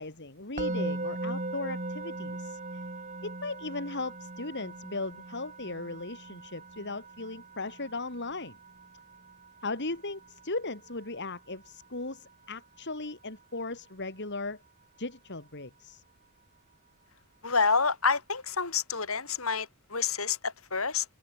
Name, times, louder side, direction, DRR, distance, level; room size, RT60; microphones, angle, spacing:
voice 1, 0.0-2.8 3.2-8.6 9.6-14.6 15.0-16.0, left 3 dB, 50° left, 3.2 m, -37 dB
Musical instrument, 0.6-11.7, right 2 dB, 35° right, 3.1 m, -39 dB
voice 2, 17.4-21.1, left 5 dB, 65° left, 5.4 m, -28 dB
head